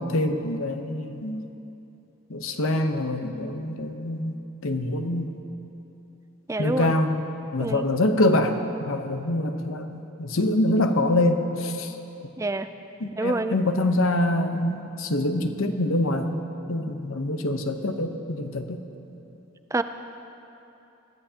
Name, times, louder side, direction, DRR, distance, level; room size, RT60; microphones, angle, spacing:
voice 1, 0.0-1.5 2.3-4.4 4.6-5.3 6.6-7.2 7.5-11.9 13.0-16.4 16.7-18.8, left 1 dB, 80° left, 6 dB, 0.9 m, -25 dB
voice 2, 6.5-6.9 7.6-7.9 12.4-12.7 13.2-13.6 19.7-19.8, right 2 dB, 15° right, 10 dB, 0.3 m, -26 dB
21.5 x 14.5 x 2.9 m, 2.9 s
head